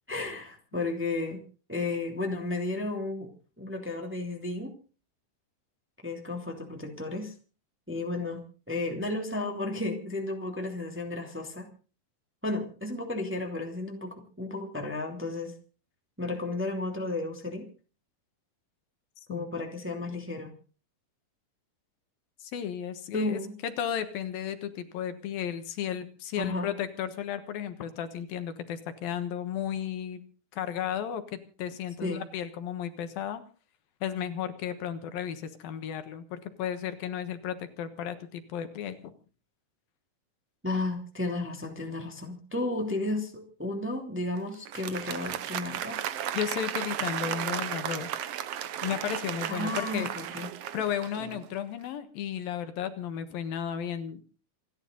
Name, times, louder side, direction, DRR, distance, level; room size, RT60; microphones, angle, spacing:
voice 1, 0.1-1.4 1.7-3.3 3.6-4.7 6.0-7.3 7.9-11.7 12.4-15.5 16.2-17.7 19.3-20.5 23.1-23.6 26.4-26.7 32.0-32.2 40.6-46.0 49.5-50.5, left 2 dB, 5° right, 3 dB, 2.1 m, -33 dB
voice 2, 19.3-19.6 22.4-30.2 30.5-33.4 34.0-39.1 46.3-48.1 48.8-50.1 50.7-54.2, left 9 dB, 75° left, 9 dB, 3.1 m, -34 dB
Applause, 44.5-51.5, right 10 dB, 80° right, 1.4 m, -34 dB
27.5 x 11.5 x 3.9 m, 0.37 s
omnidirectional pair, 4.2 m